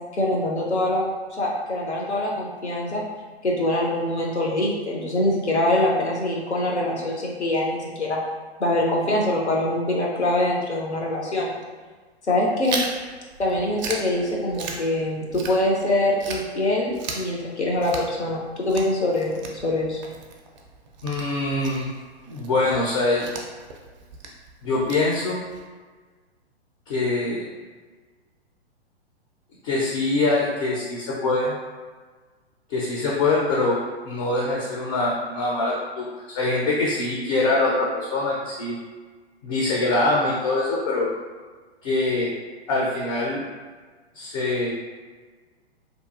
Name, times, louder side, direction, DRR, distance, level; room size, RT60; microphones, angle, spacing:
voice 1, 0.2-1.0 1.4-3.0 3.4-8.2 8.6-11.5 12.2-12.8 13.4-20.0, left 1 dB, 85° left, -3 dB, 0.8 m, -24 dB
Chewing mastication, 12.6-15.9 16.2-25.6, right 4 dB, 45° right, 0.4 m, -37 dB
voice 2, 21.0-21.9 22.3-23.3 24.6-25.4 26.9-27.5 29.6-31.5 32.7-33.8 34.1-36.1 36.3-38.8 39.4-41.1 41.8-42.3 42.7-43.4 44.1-44.7, left 2 dB, 30° left, -4 dB, 0.4 m, -23 dB
2.9 x 2.3 x 2.4 m, 1.4 s
figure-of-eight pair, 110°, 33 cm